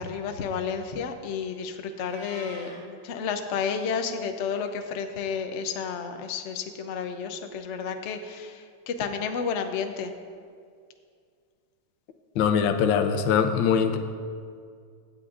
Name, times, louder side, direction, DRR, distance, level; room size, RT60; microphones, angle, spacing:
voice 1, 0.0-10.1, left 6 dB, 70° left, 6 dB, 0.7 m, -31 dB
Meow, 2.0-2.8, right 2 dB, 50° right, 2.0 m, -45 dB
voice 2, 12.4-14.0, left 7 dB, 90° left, 7 dB, 1.5 m, -22 dB
16.5 x 8.6 x 2.5 m, 2.1 s
omnidirectional pair, 2.1 m